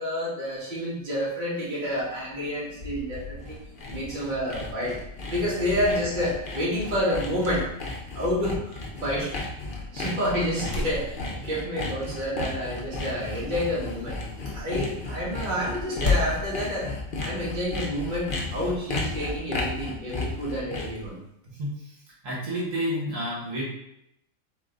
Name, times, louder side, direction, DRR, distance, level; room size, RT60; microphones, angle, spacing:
voice 1, 0.0-3.4 3.9-4.9 5.3-7.7 8.1-9.5 9.9-14.2 14.5-16.9 17.2-21.2, equal, 35° right, -7 dB, 1.5 m, -29 dB
sound 1, 1.9-20.6, left 4 dB, 65° left, 1.2 m, -38 dB
Sawing, 3.2-21.1, left 2 dB, 45° left, 0.8 m, -34 dB
voice 2, 22.2-23.6, equal, 70° right, -5 dB, 1.7 m, -29 dB
3.9 x 3.6 x 3.8 m, 0.79 s
omnidirectional pair, 1.4 m